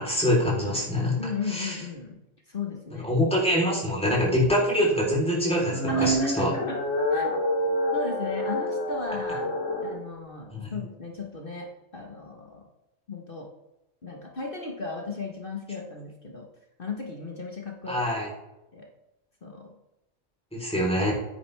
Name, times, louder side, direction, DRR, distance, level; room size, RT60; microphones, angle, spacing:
voice 1, 0.0-1.1 1.5-1.8 3.0-6.5 10.5-10.8 17.9-18.3 20.5-21.1, equal, 5° left, -4 dB, 3.8 m, -24 dB
voice 2, 1.2-3.1 5.9-6.8 7.1-7.3 7.9-9.5 9.8-11.7 11.9-12.7 13.1-13.5 14.0-16.5 16.8-18.1 18.7-18.9 19.4-19.7, left 4 dB, 45° left, 0 dB, 1.4 m, -35 dB
sound 1, 5.6-10.0, equal, 65° left, 1.8 m, -27 dB
10.0 x 9.4 x 3.4 m, 0.92 s
omnidirectional pair, 1.4 m